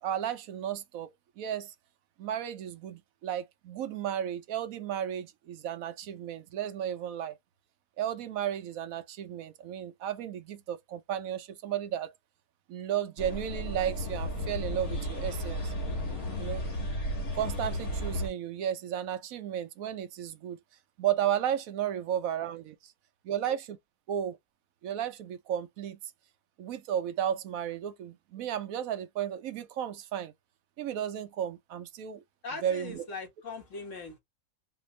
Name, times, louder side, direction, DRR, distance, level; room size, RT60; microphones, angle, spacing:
voice 1, 0.0-1.7 2.2-7.4 8.0-12.1 12.7-15.7 16.4-16.6 17.3-20.6 21.0-22.9 23.2-23.6 24.1-24.4 24.8-26.0 26.6-30.3 30.8-32.2 32.6-33.0, right 10 dB, 75° right, 1.1 m, -33 dB
sound 1, 13.2-18.3, equal, 80° left, 2.3 m, -34 dB
voice 2, 32.4-34.2, left 3 dB, 60° left, 1.8 m, -40 dB
4.1 x 2.6 x 3.1 m
omnidirectional pair, 1.5 m